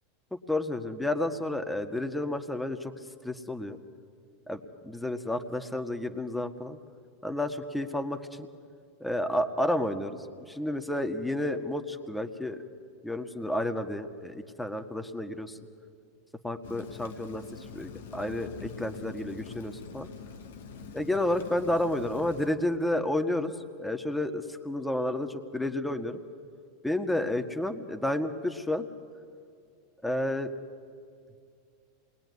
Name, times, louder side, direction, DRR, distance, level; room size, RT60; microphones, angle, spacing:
voice 1, 0.3-2.9 3.2-3.8 4.5-6.8 7.2-8.5 9.0-12.6 13.0-15.6 16.4-20.1 20.9-26.2 26.8-28.9 30.0-30.5, left 1 dB, 5° left, 7 dB, 1.8 m, -31 dB
Rain, 16.6-22.5, left 5 dB, 80° left, 2.2 m, -44 dB
27.5 x 21.5 x 9.7 m, 2.3 s
hypercardioid pair, 105°, 0 cm